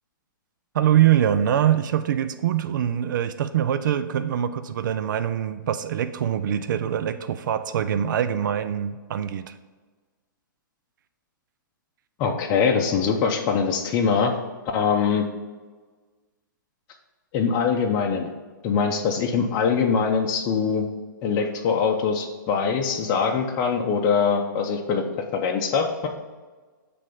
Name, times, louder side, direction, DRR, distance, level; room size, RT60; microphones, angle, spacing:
voice 1, 0.7-9.5, right 10 dB, 65° right, 11 dB, 0.4 m, -23 dB
voice 2, 12.2-14.4 14.7-15.3 17.3-18.3 18.6-20.9 21.2-25.0 25.3-26.1, left 6 dB, 30° left, 1 dB, 0.7 m, -23 dB
7.4 x 3.4 x 5.2 m, 1.3 s
hypercardioid pair, 130°, 11 cm